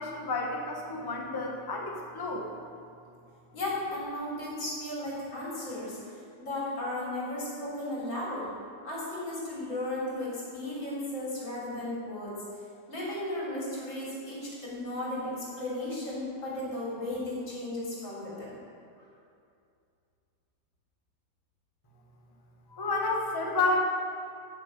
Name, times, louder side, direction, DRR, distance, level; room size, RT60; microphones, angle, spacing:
voice 1, 0.0-2.5 22.7-23.8, left 3 dB, 15° left, 0 dB, 0.9 m, -30 dB
voice 2, 3.5-8.5 8.8-12.3 12.9-18.5, left 1 dB, 80° left, -7 dB, 4.2 m, -35 dB
14.5 x 6.5 x 5.3 m, 2.4 s
omnidirectional pair, 2.1 m